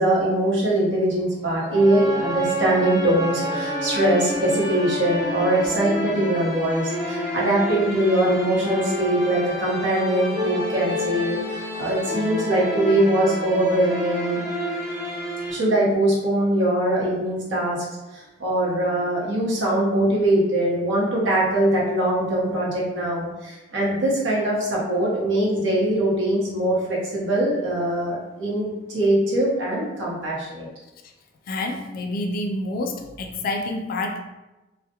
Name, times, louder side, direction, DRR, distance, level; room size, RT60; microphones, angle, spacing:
voice 1, 0.0-14.4 15.5-17.8 18.1-30.7, right 1 dB, 80° right, -6 dB, 0.9 m, -22 dB
sound 1, 1.7-15.5, equal, 20° right, 0.7 m, -29 dB
voice 2, 31.5-34.2, left 2 dB, 50° left, 3 dB, 0.3 m, -28 dB
2.3 x 2.0 x 2.8 m, 1.0 s
head